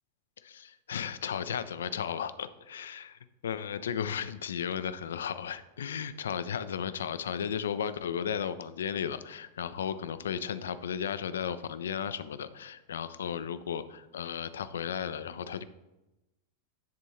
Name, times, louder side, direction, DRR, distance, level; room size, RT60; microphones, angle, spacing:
voice 1, 0.4-15.6, left 8 dB, 65° left, 13 dB, 0.4 m, -35 dB
10.5 x 3.6 x 4.1 m, 0.99 s
figure-of-eight pair, 90°, 0 cm